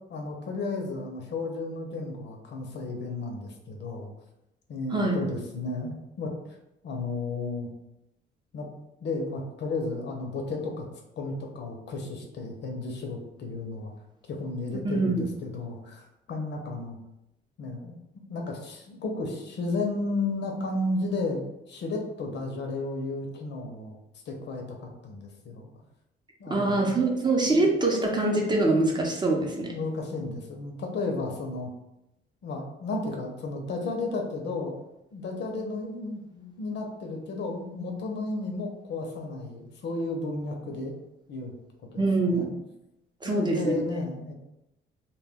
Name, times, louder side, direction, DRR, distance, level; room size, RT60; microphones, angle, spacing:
voice 1, 0.1-4.1 4.7-6.6 6.8-7.7 8.5-8.7 9.0-10.9 11.2-13.9 14.3-17.0 17.6-18.0 18.3-24.0 24.3-25.7 26.4-26.9 27.5-27.7 29.7-31.7 32.4-34.8 35.1-40.9 41.3-41.5 41.9-42.5 43.2-44.3, left 3 dB, 60° left, 2 dB, 0.6 m, -33 dB
voice 2, 4.9-5.2 14.8-15.2 26.5-29.7 42.0-42.5 43.2-43.7, right 2 dB, 20° right, -1 dB, 0.6 m, -24 dB
2.2 x 2.1 x 3.4 m, 0.87 s
cardioid pair, 90°, 20 cm